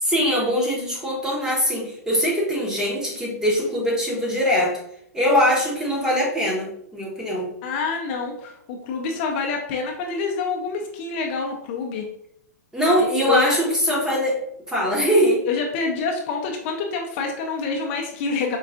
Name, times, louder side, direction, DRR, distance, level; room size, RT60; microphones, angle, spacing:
voice 1, 0.0-4.8 5.1-7.5 12.7-14.4 14.7-15.4, equal, 5° right, -3 dB, 0.8 m, -22 dB
voice 2, 7.6-12.1 13.0-13.6 15.5-18.6, left 4 dB, 40° left, 2 dB, 0.5 m, -27 dB
4.5 x 2.3 x 2.4 m, 0.74 s
hypercardioid pair, 140°, 9 cm